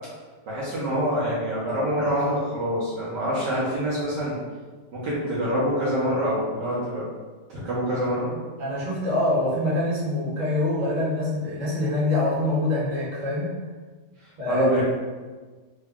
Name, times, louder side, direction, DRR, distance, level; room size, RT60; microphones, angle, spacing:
voice 1, 0.4-4.4 4.9-7.0 7.5-8.3 14.5-14.8, equal, 65° right, -8 dB, 1.4 m, -25 dB
voice 2, 8.6-13.6 14.4-14.6, left 2 dB, 25° right, -9 dB, 1.2 m, -25 dB
3.9 x 2.2 x 3.5 m, 1.4 s
omnidirectional pair, 2.2 m